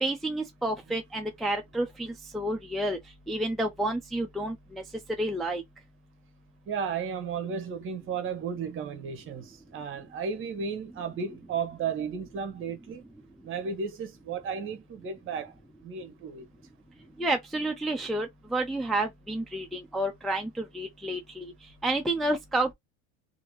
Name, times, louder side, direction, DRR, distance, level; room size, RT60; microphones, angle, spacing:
voice 1, 0.0-3.0 3.3-4.8 5.2-5.6 17.2-21.5 21.8-22.7, right 1 dB, ahead, 0.4 m, -30 dB
voice 2, 6.7-13.0 13.4-15.5 15.8-16.5, right 6 dB, 40° right, 1.0 m, -34 dB
2.8 x 2.6 x 3.0 m
cardioid pair, 130°, 31 cm